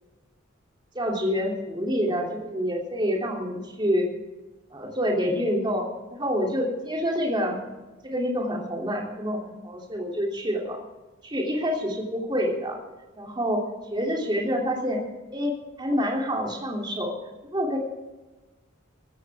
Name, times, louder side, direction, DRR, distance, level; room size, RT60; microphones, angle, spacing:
voice 1, 0.9-4.1 4.7-7.6 8.0-10.8 11.2-12.8 13.2-13.6 13.9-15.0 15.3-15.5 15.8-17.1 17.5-17.8, equal, 20° right, 0 dB, 3.1 m, -27 dB
16.0 x 14.0 x 3.6 m, 1.2 s
head